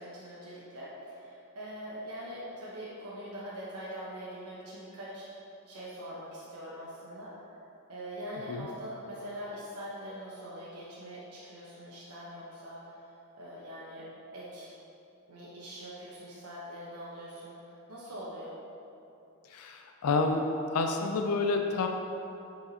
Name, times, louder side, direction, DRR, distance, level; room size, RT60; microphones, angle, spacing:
voice 1, 0.0-5.2 5.7-7.6 7.9-14.0 14.3-14.7 15.3-18.6, equal, 85° right, -8 dB, 1.0 m, -43 dB
voice 2, 19.4-20.4 20.7-21.9, left 3 dB, 75° left, 4 dB, 0.4 m, -29 dB
7.9 x 4.7 x 2.8 m, 2.8 s
head